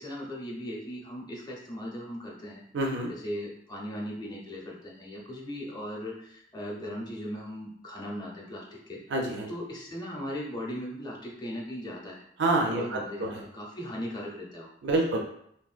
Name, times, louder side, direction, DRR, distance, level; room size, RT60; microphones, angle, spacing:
voice 1, 0.0-2.6 3.2-9.0 9.5-12.2 12.7-14.7, equal, 25° left, -3 dB, 0.6 m, -38 dB
voice 2, 2.7-3.1 9.1-9.5 12.4-13.4 14.8-15.2, right 2 dB, 80° right, 1 dB, 0.5 m, -27 dB
3.4 x 2.1 x 2.4 m, 0.72 s
head